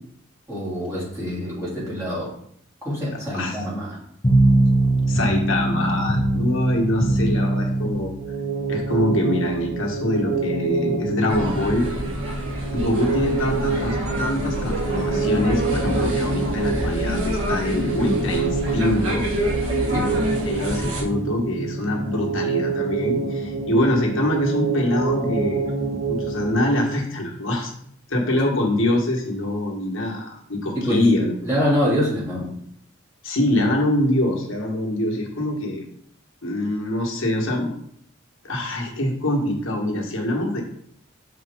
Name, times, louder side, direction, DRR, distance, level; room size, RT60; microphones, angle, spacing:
voice 1, 0.5-2.3 2.8-4.0 19.9-20.2 30.7-31.0 31.4-32.5, equal, 15° right, -8 dB, 2.6 m, -25 dB
sound 1, 4.2-15.4, right 1 dB, 25° left, 0.8 m, -24 dB
voice 2, 5.1-8.1 8.7-11.9 12.7-19.3 20.5-25.6 26.1-27.7 28.1-31.4 33.2-35.8 36.4-37.7 38.4-40.6, left 1 dB, 70° left, 0 dB, 1.4 m, -24 dB
sound 2, 8.2-27.0, right 4 dB, 60° right, 1.4 m, -27 dB
sound 3, 11.3-21.0, equal, 85° right, 1.4 m, -27 dB
6.0 x 4.4 x 3.6 m, 0.67 s
head